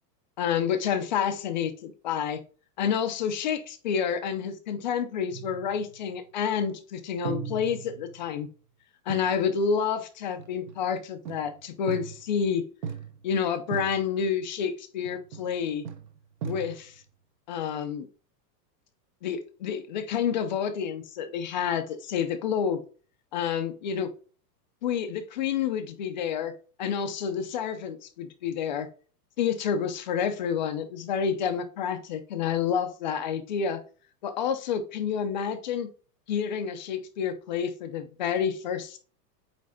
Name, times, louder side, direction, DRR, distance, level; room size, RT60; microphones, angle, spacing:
voice 1, 0.4-2.4 2.8-8.5 9.1-12.6 13.2-15.8 16.4-17.0 17.5-18.1 19.2-22.8 23.3-24.1 24.8-26.5 26.8-28.9 29.4-33.8 34.2-35.9 36.3-39.0, left 7 dB, 30° left, 9 dB, 0.5 m, -29 dB
sound 1, 5.3-6.2 7.2-8.4 9.1-9.4 10.4-10.9 11.2-12.4 12.8-13.4 13.7-14.3 15.0-15.6 15.8-17.0, right 7 dB, 30° right, 0.6 m, -38 dB
8.5 x 3.3 x 3.9 m, 0.38 s
supercardioid pair, 175°, 49 cm